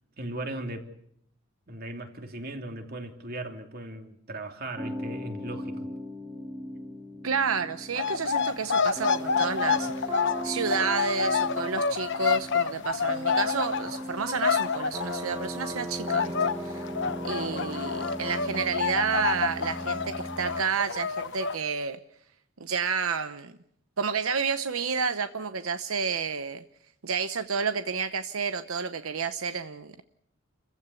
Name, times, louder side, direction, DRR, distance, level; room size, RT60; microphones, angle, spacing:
voice 1, 0.2-0.9 1.7-5.9, right 1 dB, 45° right, 4 dB, 3.0 m, -37 dB
sound 1, 4.8-20.6, equal, 15° right, 2.1 m, -38 dB
voice 2, 7.2-10.1 10.4-16.9 17.2-22.0 22.6-23.5 24.0-26.6 27.0-30.0, right 5 dB, 80° right, 10 dB, 0.9 m, -30 dB
sound 2, 7.9-15.8 16.1-21.6, left 5 dB, 60° left, 1.0 m, -28 dB
29.5 x 15.5 x 8.4 m, 0.73 s
head